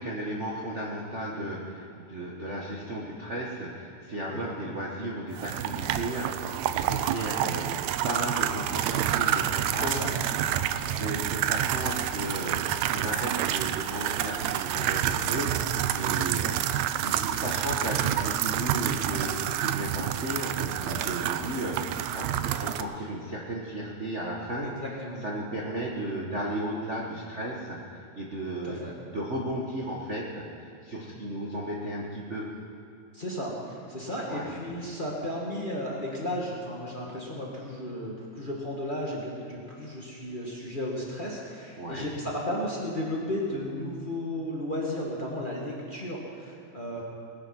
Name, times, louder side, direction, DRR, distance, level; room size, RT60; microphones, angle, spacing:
voice 1, 0.0-10.1 10.5-10.6 10.9-16.6 17.0-24.7 25.2-27.8 28.1-30.4 30.8-32.5 34.3-34.5 41.8-42.1, right 1 dB, 60° right, -4 dB, 0.7 m, -34 dB
sound 1, 5.3-22.8, right 11 dB, 90° right, 1.6 m, -28 dB
voice 2, 9.8-10.1 10.7-11.0 16.0-16.3 20.8-21.0 24.6-25.2 28.6-28.9 31.0-31.2 33.1-47.0, left 1 dB, 20° left, -3 dB, 1.4 m, -34 dB
20.5 x 10.0 x 6.0 m, 2.6 s
omnidirectional pair, 3.8 m